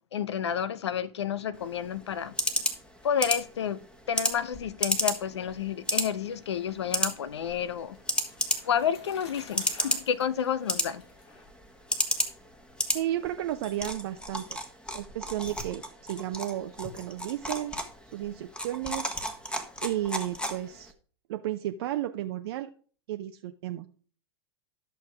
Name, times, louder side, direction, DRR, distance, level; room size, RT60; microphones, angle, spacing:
voice 1, 0.1-2.3 3.0-3.8 4.1-8.0 8.6-11.0, left 8 dB, 75° left, 0.7 m, -30 dB
sound 1, 1.5-20.9, left 1 dB, 5° left, 1.4 m, -33 dB
Bicycle, 7.5-12.2, left 3 dB, 45° left, 3.7 m, -51 dB
voice 2, 12.9-14.6 14.9-17.7 18.1-19.1 19.8-20.9 21.3-22.7 23.1-23.9, right 12 dB, 65° right, 0.6 m, -33 dB
12.0 x 6.4 x 3.5 m
hypercardioid pair, 95°, 14 cm